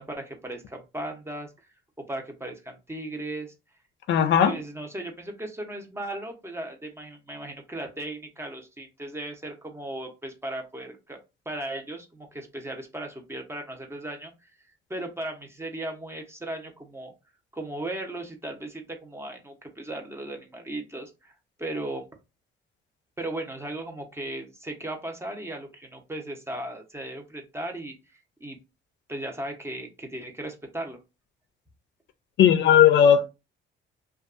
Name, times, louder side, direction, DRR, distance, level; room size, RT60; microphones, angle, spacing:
voice 1, 0.0-1.5 2.1-3.5 4.4-11.2 11.5-14.3 14.9-17.1 17.5-21.3 21.6-22.1 23.2-27.9 28.4-28.6 29.1-31.0, right 1 dB, 15° right, 0.7 m, -36 dB
voice 2, 4.1-4.5 32.4-33.3, left 9 dB, 65° left, 0.4 m, -17 dB
2.5 x 2.3 x 2.4 m
cardioid pair, 90°, 20 cm